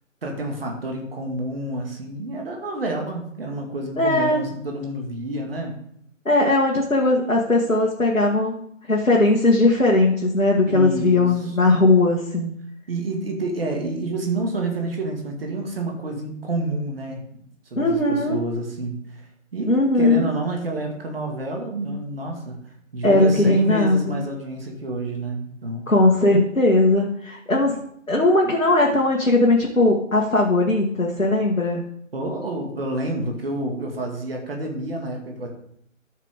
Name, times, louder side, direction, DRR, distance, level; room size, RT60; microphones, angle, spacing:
voice 1, 0.2-5.7 10.7-11.8 12.9-17.4 17.7-19.3 19.5-22.6 22.9-25.9 32.1-35.5, right 2 dB, 45° right, 1 dB, 2.1 m, -29 dB
voice 2, 4.0-4.4 6.3-12.5 17.8-18.4 19.7-20.3 23.0-24.2 25.9-27.8 28.1-31.8, left 2 dB, 85° left, -2 dB, 2.0 m, -19 dB
13.5 x 6.6 x 3.7 m, 0.70 s
figure-of-eight pair, 150°, 39 cm